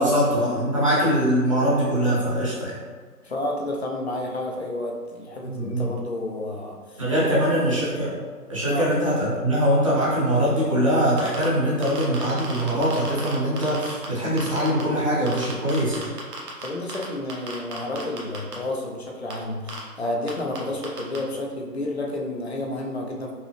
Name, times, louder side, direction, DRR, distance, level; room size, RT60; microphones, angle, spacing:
voice 1, 0.0-2.8 5.4-6.0 7.0-8.2 8.5-16.1, equal, 20° right, -9 dB, 0.6 m, -22 dB
voice 2, 3.2-7.4 8.7-8.8 16.6-23.3, left 1 dB, 45° left, 0 dB, 0.6 m, -31 dB
sound 1, 11.1-11.4 11.8-14.1 14.4-14.8 15.3-17.0 17.3-18.5 19.3-19.4 19.7-19.8 20.3-20.4 20.6-20.7 20.8-21.2, right 4 dB, 75° right, 1.2 m, -35 dB
5.4 x 2.0 x 3.2 m, 1.5 s
hypercardioid pair, 165°, 47 cm